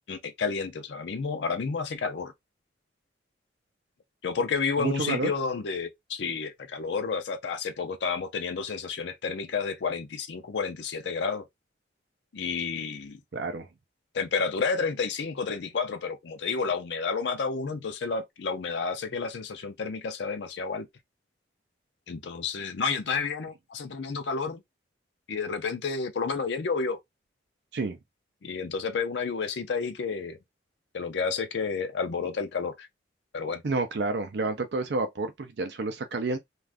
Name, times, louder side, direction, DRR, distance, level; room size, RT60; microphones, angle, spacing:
voice 1, 0.1-2.3 4.2-11.5 12.3-13.2 14.1-20.9 22.1-24.6 25.3-27.0 28.4-30.4 30.9-32.9 33.3-33.6, left 5 dB, 75° left, 0.5 m, -30 dB
voice 2, 4.8-5.3 13.3-13.7 27.7-28.0 33.6-36.4, right 3 dB, 65° right, 0.5 m, -29 dB
2.4 x 2.4 x 3.3 m
head